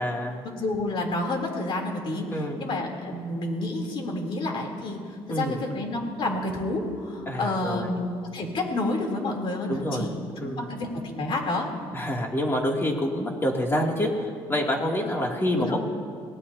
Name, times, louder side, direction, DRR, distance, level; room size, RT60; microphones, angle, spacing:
voice 1, 0.0-0.4 2.3-2.6 5.3-5.6 7.2-7.9 9.7-10.1 10.4-10.7 11.9-15.8, equal, 25° left, -1 dB, 2.8 m, -27 dB
voice 2, 0.5-2.3 2.6-5.0 5.3-8.1 8.3-10.2 10.4-11.7 15.6-15.8, left 2 dB, 60° left, 1 dB, 3.5 m, -29 dB
23.5 x 18.0 x 2.9 m, 2.1 s
cardioid pair, 85°, 10 cm